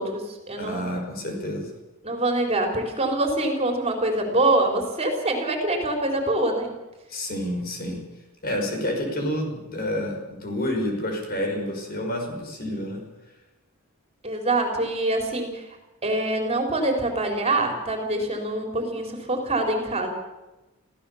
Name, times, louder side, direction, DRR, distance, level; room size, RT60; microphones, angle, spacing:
voice 1, 0.0-0.9 2.0-6.7 14.2-15.7 16.0-20.1, right 2 dB, 30° right, 3 dB, 3.8 m, -25 dB
voice 2, 0.6-1.7 7.1-8.0 8.4-13.0, left 1 dB, 45° left, 2 dB, 6.0 m, -29 dB
26.0 x 16.0 x 7.1 m, 1.1 s
head